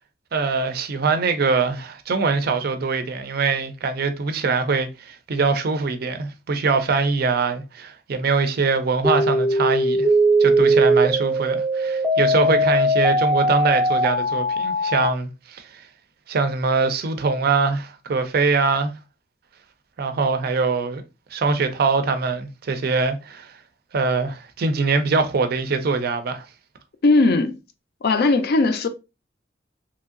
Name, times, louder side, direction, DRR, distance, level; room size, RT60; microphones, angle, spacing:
voice 1, 0.3-10.1 10.4-15.7 16.3-18.9 20.0-21.0 21.3-23.5 23.9-26.4, right 4 dB, 50° right, 0.4 m, -23 dB
sound 1, 9.0-15.1, right 1 dB, ahead, 0.5 m, -19 dB
voice 2, 27.0-27.5 28.0-28.9, left 3 dB, 55° left, 0.4 m, -18 dB
3.0 x 2.6 x 2.4 m
head